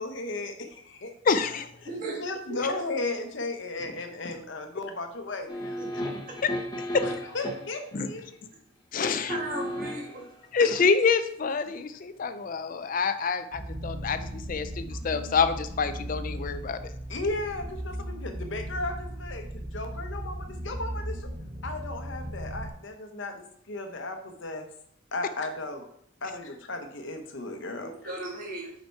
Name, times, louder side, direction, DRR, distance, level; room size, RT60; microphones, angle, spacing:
voice 1, 0.0-1.1 1.8-1.9 2.2-6.0 7.0-8.3 10.6-10.9 17.1-21.3 21.6-24.7 25.1-25.9 26.2-28.2, left 2 dB, 60° left, 5 dB, 0.9 m, -35 dB
voice 2, 1.3-1.7 6.4-6.5 6.9-7.0 7.9-8.1 8.9-9.4 10.5-16.9, left 5 dB, 40° left, 11 dB, 0.4 m, -27 dB
voice 3, 1.9-2.2 2.5-2.8 9.2-10.3 27.8-28.7, right 2 dB, 40° right, -1 dB, 1.6 m, -36 dB
sound 1, 5.5-7.8 9.0-10.2 10.7-10.8, equal, 20° left, 0.8 m, -34 dB
sound 2, 13.5-22.7, right 1 dB, 20° right, 0.6 m, -37 dB
5.3 x 5.0 x 4.5 m, 0.69 s
head